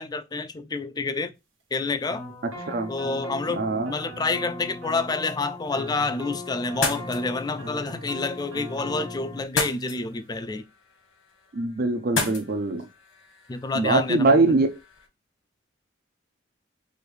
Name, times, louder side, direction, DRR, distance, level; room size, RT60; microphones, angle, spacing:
voice 1, 0.0-1.3 1.7-2.2 2.9-3.6 3.9-10.7 13.5-14.6, left 3 dB, 20° left, 0.3 m, -28 dB
sound 1, 2.1-9.4, left 1 dB, 85° right, 1.3 m, -38 dB
voice 2, 3.5-3.9 11.5-12.9 13.7-14.7, right 3 dB, 50° right, 0.5 m, -22 dB
sound 2, 6.6-15.1, left 4 dB, 80° left, 1.3 m, -35 dB
4.9 x 2.6 x 3.2 m
head